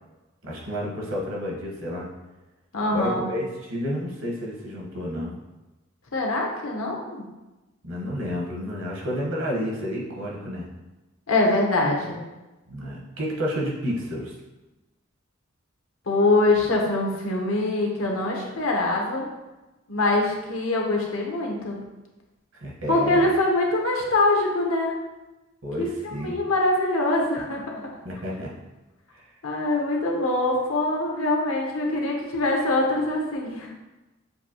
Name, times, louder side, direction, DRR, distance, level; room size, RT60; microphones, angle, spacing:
voice 1, 0.4-2.1 2.9-5.3 7.8-10.7 12.7-14.3 22.5-23.3 25.6-26.4 28.0-28.5 29.1-29.3, equal, 70° right, -2 dB, 1.2 m, -30 dB
voice 2, 2.7-3.3 6.1-7.2 11.3-12.2 16.1-19.2 19.9-21.8 22.9-24.9 25.8-27.9 29.4-33.7, left 2 dB, 85° left, 0 dB, 1.0 m, -23 dB
6.9 x 2.7 x 2.9 m, 1.1 s
head